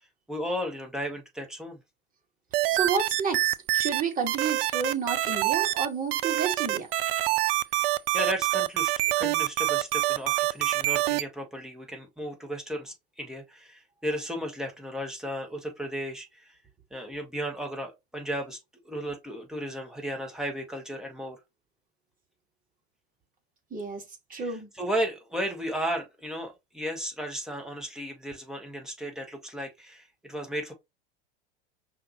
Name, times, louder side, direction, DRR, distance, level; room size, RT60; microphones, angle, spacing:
voice 1, 0.3-1.8 7.8-16.6 16.9-21.4 24.3-30.7, equal, ahead, 1.5 m, -34 dB
sound 1, 2.5-4.0 4.3-5.9 6.1-11.2, right 16 dB, 60° right, 0.5 m, -26 dB
voice 2, 2.7-6.9 23.7-24.0 24.3-24.7, right 5 dB, 25° right, 1.9 m, -30 dB
5.6 x 2.8 x 3.0 m
hypercardioid pair, 85°, 32 cm